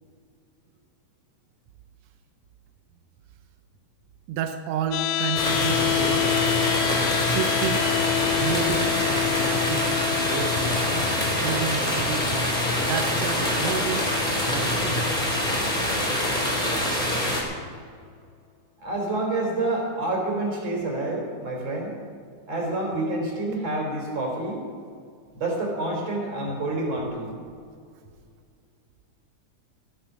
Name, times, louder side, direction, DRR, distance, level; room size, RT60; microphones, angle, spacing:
voice 1, 4.3-6.3 7.2-7.9 8.4-12.3 12.7-14.1 14.5-15.0, right 8 dB, 75° right, 7 dB, 1.6 m, -31 dB
sound 1, 4.9-16.9, left 16 dB, 90° left, 2.2 m, -30 dB
sound 2, 5.3-17.4, left 1 dB, 15° left, 3.1 m, -25 dB
voice 2, 18.8-22.0 22.5-24.6 25.3-27.4, right 2 dB, 55° right, -1 dB, 4.5 m, -28 dB
14.5 x 10.5 x 6.2 m, 2.2 s
omnidirectional pair, 3.6 m